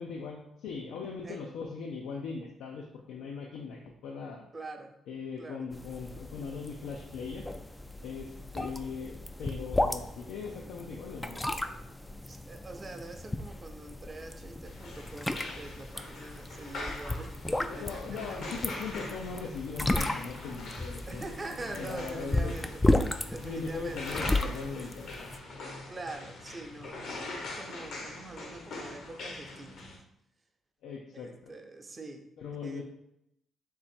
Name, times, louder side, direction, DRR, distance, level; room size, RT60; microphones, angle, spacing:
voice 1, 0.0-4.4 5.1-7.5 8.0-11.4 17.8-22.7 23.4-25.3 30.8-31.5 32.4-32.8, left 5 dB, 85° left, 1 dB, 0.5 m, -40 dB
voice 2, 4.5-4.9 5.4-5.7 12.3-17.9 18.3-18.4 21.1-24.0 25.9-29.8 31.1-32.3 32.6-32.8, right 2 dB, 30° right, 5 dB, 0.6 m, -44 dB
sound 1, 5.7-25.4, left 1 dB, 10° left, 0.3 m, -34 dB
sound 2, 14.6-30.0, left 2 dB, 70° left, 1.0 m, -42 dB
3.7 x 2.9 x 4.2 m, 0.79 s
cardioid pair, 90°, 0 cm